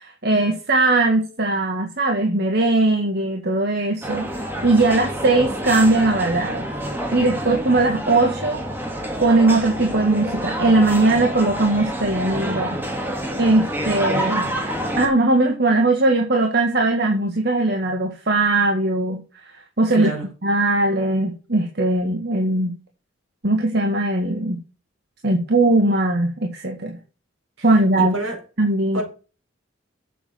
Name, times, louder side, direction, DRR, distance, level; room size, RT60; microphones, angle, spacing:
voice 1, 0.0-6.7 7.1-8.6 8.9-12.8 13.4-14.5 15.0-20.1 20.4-22.8 23.4-24.6 25.2-27.0 27.6-28.1 28.6-29.0, right 2 dB, 55° right, 1.7 m, -19 dB
sound 1, 4.0-15.1, equal, 10° right, 2.2 m, -28 dB
voice 2, 19.9-20.2 27.6-27.7 28.0-28.4 28.9-29.0, right 1 dB, 75° right, 5.4 m, -27 dB
7.7 x 7.0 x 7.1 m
head